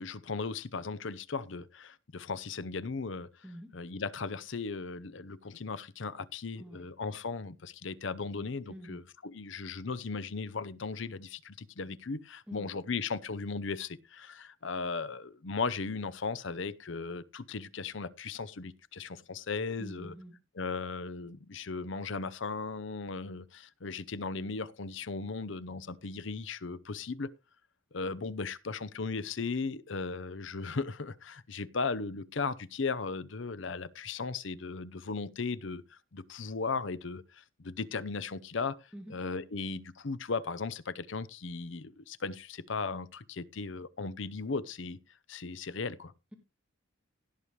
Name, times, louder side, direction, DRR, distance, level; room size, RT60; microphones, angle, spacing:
voice 1, 0.0-3.3 3.7-20.1 20.6-27.3 27.9-45.0 45.3-46.1, left 4 dB, 65° left, 0.7 m, -37 dB
voice 2, 8.7-9.0 12.5-12.7 19.8-20.4 38.9-39.1, equal, 5° right, 1.7 m, -46 dB
16.5 x 6.8 x 3.2 m
head